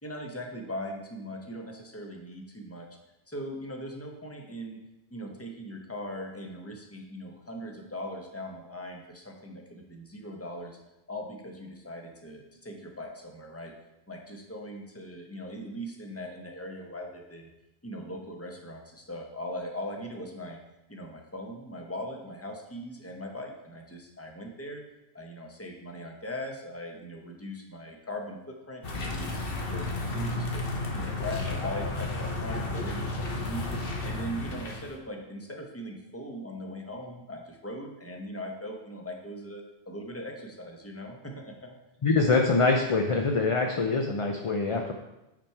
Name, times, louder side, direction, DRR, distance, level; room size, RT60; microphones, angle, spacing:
voice 1, 0.0-2.9 3.3-4.8 5.1-10.8 11.1-13.7 14.1-17.5 17.8-20.6 20.9-24.8 25.1-30.6 30.9-33.7 34.0-41.8, equal, 15° left, 1 dB, 0.9 m, -40 dB
sound 1, 28.8-34.9, left 2 dB, 65° left, 1.3 m, -32 dB
voice 2, 42.0-44.9, left 3 dB, 40° left, 2 dB, 0.6 m, -24 dB
9.0 x 4.3 x 4.6 m, 0.95 s
omnidirectional pair, 1.1 m